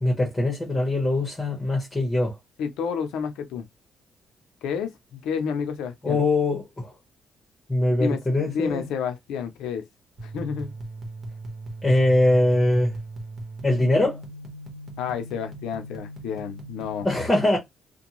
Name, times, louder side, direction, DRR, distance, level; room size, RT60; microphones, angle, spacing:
voice 1, 0.0-2.3 6.0-6.9 7.7-8.9 11.8-13.0 13.6-14.2 17.0-17.6, left 1 dB, 20° left, 1.1 m, -22 dB
voice 2, 2.6-3.7 4.6-6.2 7.9-9.9 10.2-10.7 15.0-17.1, left 7 dB, 90° left, 0.5 m, -30 dB
sound 1, 10.2-17.0, right 1 dB, 40° right, 1.2 m, -39 dB
2.6 x 2.2 x 3.0 m
cardioid pair, 90°, 0 cm